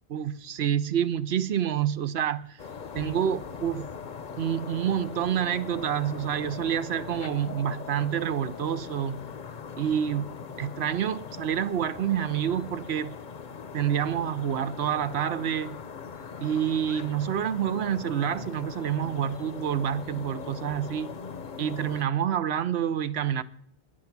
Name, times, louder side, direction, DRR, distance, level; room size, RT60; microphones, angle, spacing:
voice 1, 0.1-2.6 2.9-3.9 4.4-9.2 9.8-13.1 13.7-15.8 16.4-21.1 21.6-23.4, right 9 dB, 75° right, 1.0 m, -28 dB
sound 1, 2.6-22.0, left 6 dB, 50° left, 0.8 m, -40 dB
16.0 x 10.5 x 6.0 m
omnidirectional pair, 1.1 m